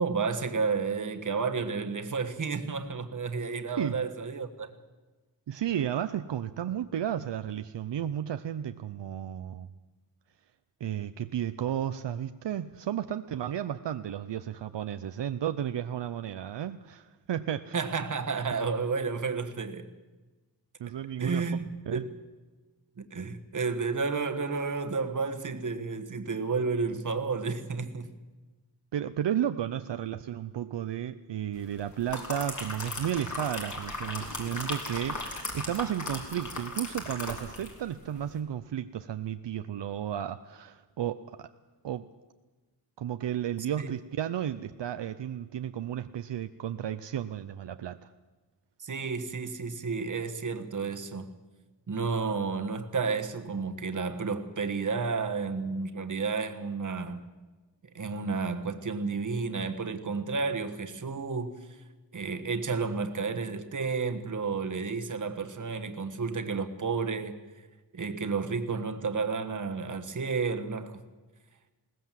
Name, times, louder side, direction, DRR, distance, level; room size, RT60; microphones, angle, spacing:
voice 1, 0.0-4.7 17.7-19.9 21.2-22.1 23.0-28.1 43.8-43.9 48.8-51.3 51.9-57.2 57.9-61.8 62.1-67.4 67.9-71.0, right 4 dB, 45° right, 1.4 m, -31 dB
voice 2, 5.5-9.7 10.8-17.8 20.8-21.4 21.9-22.1 28.9-41.5 41.8-42.1 43.0-48.1, right 10 dB, 75° right, 0.7 m, -33 dB
sound 1, 31.8-37.8 38.1-38.3, left 2 dB, 45° left, 3.4 m, -37 dB
21.0 x 18.5 x 7.5 m
wide cardioid pair, 175°, 42 cm